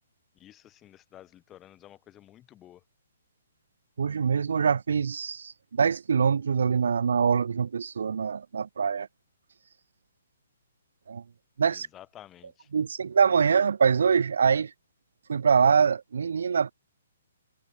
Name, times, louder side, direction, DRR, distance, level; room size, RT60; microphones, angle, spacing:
voice 1, 0.3-2.8 11.7-12.7, left 12 dB, 20° left, 1.5 m, -52 dB
voice 2, 4.0-9.1 11.1-11.2 11.6-11.9 12.7-14.7 15.3-16.7, right 6 dB, 70° right, 0.3 m, -24 dB
figure-of-eight pair, 130°, 0 cm